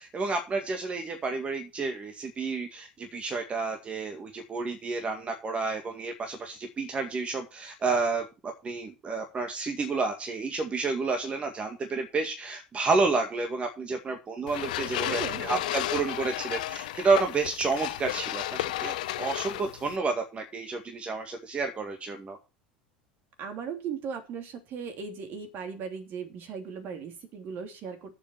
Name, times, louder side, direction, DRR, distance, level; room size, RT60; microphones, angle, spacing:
voice 1, 0.0-22.4, right 4 dB, 25° right, 4 dB, 2.0 m, -30 dB
sound 1, 14.5-20.0, left 15 dB, 65° left, 0.8 m, -33 dB
voice 2, 15.0-15.6 23.4-28.2, right 6 dB, 45° right, 6 dB, 3.0 m, -37 dB
8.3 x 7.4 x 6.9 m, 0.29 s
figure-of-eight pair, 75°, 5 cm